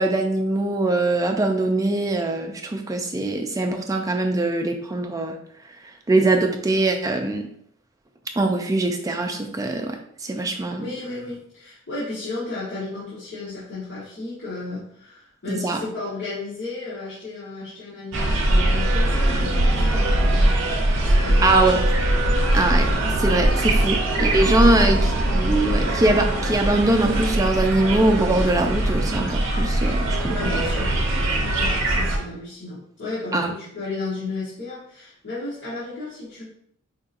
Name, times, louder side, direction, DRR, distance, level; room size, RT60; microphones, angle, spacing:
voice 1, 0.0-5.3 6.1-7.5 8.4-10.9 15.5-15.8 21.4-21.8 22.5-22.9 23.2-30.5 33.3-33.5, right 2 dB, 15° right, 4 dB, 0.3 m, -22 dB
voice 2, 10.8-21.8 30.3-30.9 31.3-36.4, left 3 dB, 55° left, -10 dB, 1.1 m, -34 dB
sound 1, 18.1-32.2, right 1 dB, 55° right, 0.6 m, -21 dB
4.6 x 2.6 x 2.5 m, 0.67 s
head